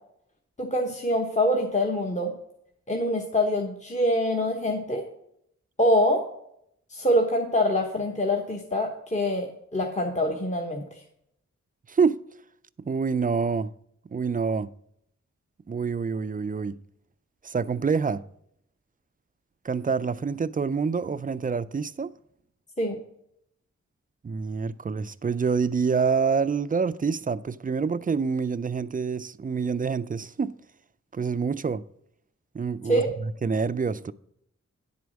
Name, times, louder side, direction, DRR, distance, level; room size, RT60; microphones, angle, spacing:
voice 1, 0.6-2.3 2.9-5.0 5.8-6.2 6.9-10.8 22.8-23.0 32.9-33.1, left 1 dB, 25° left, 1.1 m, -25 dB
voice 2, 11.9-12.2 12.9-13.7 14.1-14.7 15.7-16.8 17.4-18.2 19.6-22.1 24.2-30.6 31.1-31.8 32.5-34.1, right 5 dB, 30° right, 0.4 m, -27 dB
10.0 x 4.7 x 6.2 m
wide cardioid pair, 70°, 29 cm